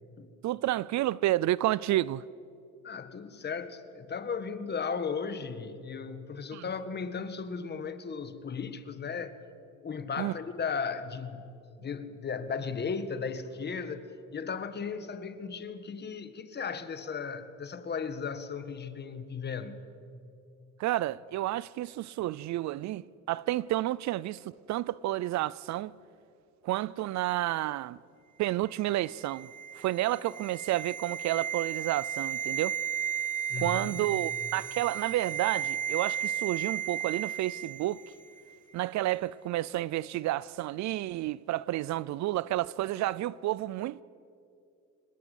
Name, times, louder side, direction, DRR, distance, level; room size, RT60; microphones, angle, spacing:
voice 1, 0.4-2.2 6.5-6.6 10.2-10.3 20.8-24.4 24.7-25.9 26.6-28.0 28.4-29.5 29.8-32.8 33.6-38.0 38.7-44.0, right 15 dB, 60° right, 0.5 m, -30 dB
voice 2, 2.8-9.3 9.8-11.5 11.8-19.8 33.5-34.1, left 5 dB, 30° left, 1.6 m, -36 dB
sound 1, 28.9-38.1 38.4-38.5, right 9 dB, 25° right, 2.8 m, -34 dB
25.0 x 20.5 x 8.3 m
cardioid pair, 130°, 33 cm